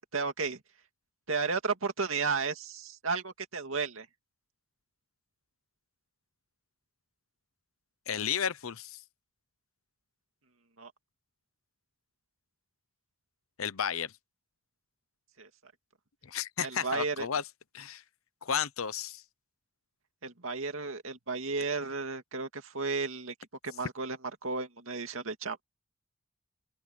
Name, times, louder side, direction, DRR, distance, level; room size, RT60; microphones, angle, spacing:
voice 1, 0.1-0.6 1.3-4.1 10.8-10.9 15.4-15.5 16.6-17.3 20.2-23.3 23.6-24.2 24.4-25.6, right 4 dB, 70° right, 2.5 m, -33 dB
voice 2, 8.1-9.0 13.6-14.1 16.2-17.4 17.7-18.0 18.4-19.2, left 8 dB, 80° left, 0.8 m, -33 dB
open air
head